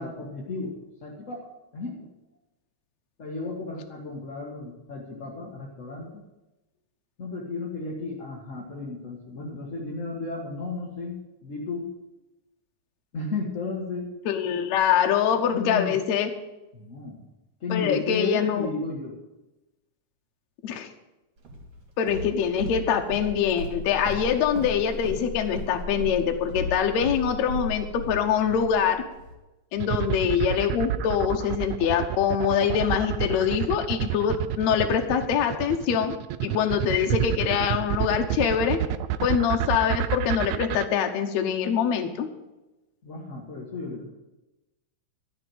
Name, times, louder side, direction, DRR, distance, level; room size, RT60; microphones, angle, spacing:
voice 1, 0.0-1.5 1.7-2.1 3.2-6.2 7.2-11.9 13.1-14.1 15.5-16.0 16.7-17.2 17.6-19.2 43.0-44.1, left 3 dB, 35° left, -4 dB, 1.5 m, -34 dB
voice 2, 14.3-16.3 17.7-18.7 20.6-20.9 22.0-29.0 29.7-36.1 36.4-38.8 39.2-42.3, left 8 dB, 70° left, 4 dB, 2.1 m, -24 dB
Walk footsteps, 21.4-29.3, left 1 dB, 60° right, 3.8 m, -36 dB
sound 1, 29.8-40.9, right 13 dB, 80° right, 1.8 m, -28 dB
13.5 x 6.1 x 9.2 m, 1.0 s
omnidirectional pair, 3.5 m